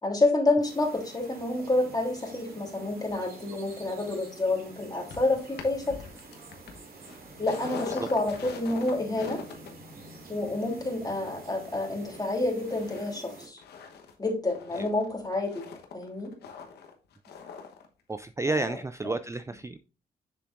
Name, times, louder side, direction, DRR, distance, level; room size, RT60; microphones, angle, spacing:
voice 1, 0.0-6.0 7.4-9.4 10.3-13.6 14.2-15.6 15.9-16.3 18.5-18.8 19.0-19.1, left 2 dB, 25° left, 3.2 m, -28 dB
sound 1, 0.6-13.5, right 3 dB, 65° right, 2.8 m, -48 dB
sound 2, 5.1-12.3 12.7-13.1 13.4-17.9 18.1-18.2, left 6 dB, 85° left, 1.1 m, -43 dB
voice 2, 18.1-19.8, right 3 dB, 15° right, 0.4 m, -31 dB
7.5 x 6.7 x 2.5 m
cardioid pair, 55°, 16 cm